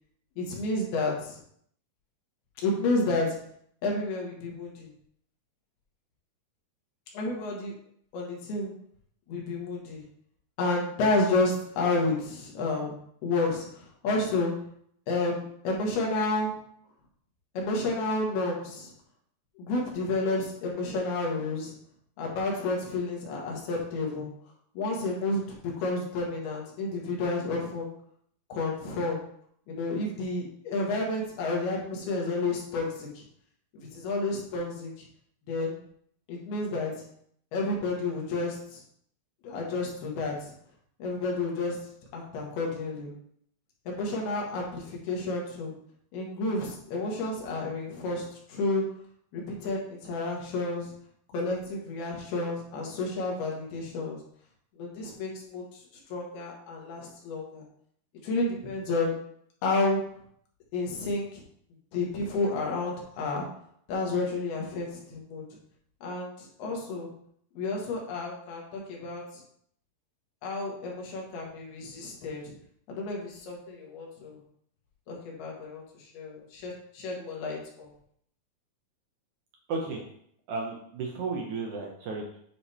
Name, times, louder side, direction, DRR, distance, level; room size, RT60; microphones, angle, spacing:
voice 1, 0.4-1.4 2.6-3.4 3.8-4.9 7.1-7.7 8.1-8.7 9.3-10.0 10.6-13.0 13.2-14.5 15.1-16.5 17.6-18.9 19.6-21.8 22.2-24.3 24.8-27.9 28.5-29.2 29.7-33.2 33.7-34.9 35.5-35.8 36.3-36.9 37.5-38.8 39.4-40.5 41.0-41.8 42.1-43.1 43.9-45.7 46.1-48.8 49.3-50.9 51.3-54.2 54.8-55.6 56.1-57.6 58.2-59.1 59.6-60.0 60.7-61.3 61.9-63.5 63.9-65.4 66.0-67.1 67.6-69.2 70.4-72.5 72.9-74.4 75.1-75.8 76.1-77.9, left 2 dB, 90° left, -2 dB, 3.5 m, -30 dB
voice 2, 79.7-80.0 80.5-82.4, right 3 dB, 70° right, -1 dB, 1.9 m, -33 dB
9.7 x 3.5 x 4.3 m, 0.66 s
omnidirectional pair, 4.3 m